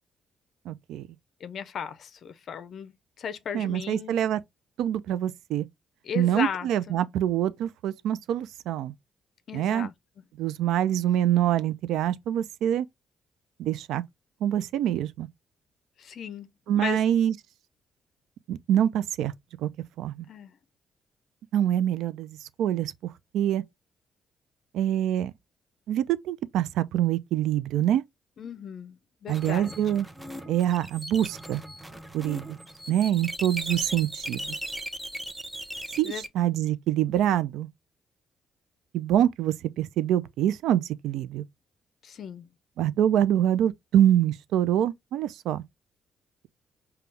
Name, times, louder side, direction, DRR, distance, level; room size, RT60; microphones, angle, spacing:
voice 1, 0.7-1.1 3.5-4.4 4.8-5.7 6.1-8.9 9.5-9.9 10.4-12.9 13.6-14.0 14.4-15.3 16.7-17.3 18.5-19.3 19.6-19.7 20.0-20.3 21.5-23.6 24.7-25.3 25.9-28.0 29.3-30.1 30.5-31.6 32.1-32.6 32.9-34.6 36.0-37.7 38.9-41.4 42.8-45.6, right 11 dB, 85° right, 0.4 m, -25 dB
voice 2, 1.4-4.3 6.0-7.0 9.5-9.9 16.0-16.5 16.8-17.0 20.3-20.5 28.4-29.0 29.2-29.8 36.0-36.6 42.0-42.5, left 7 dB, 60° left, 0.5 m, -36 dB
sound 1, 29.3-36.3, right 1 dB, 10° right, 0.6 m, -38 dB
5.2 x 2.3 x 3.3 m
cardioid pair, 90°, 0 cm